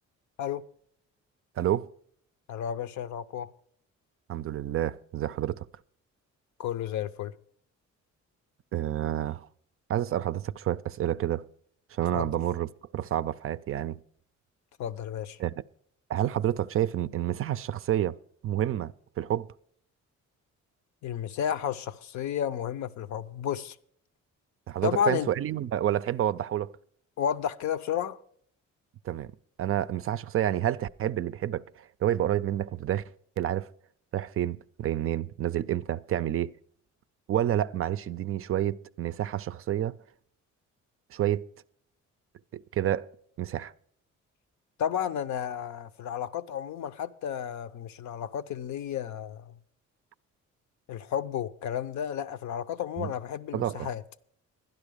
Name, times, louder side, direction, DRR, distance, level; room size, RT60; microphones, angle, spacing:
voice 1, 1.6-1.9 4.3-5.6 8.7-9.5 9.9-11.5 11.9-14.0 15.4-15.5 16.1-18.2 18.4-19.5 24.7-26.7 29.1-29.3 29.6-33.0 33.4-33.7 34.1-36.5 37.3-40.0 41.1-41.5 42.5-43.1 43.4-43.7 53.0-53.1 53.5-53.9, right 11 dB, 50° right, 0.4 m, -29 dB
voice 2, 2.5-3.5 6.6-7.3 12.1-12.3 14.8-15.4 21.0-23.8 24.8-25.3 27.2-28.2 44.8-49.5 50.9-54.0, left 9 dB, 70° left, 0.6 m, -32 dB
12.0 x 10.5 x 5.0 m
cardioid pair, 90°, 30 cm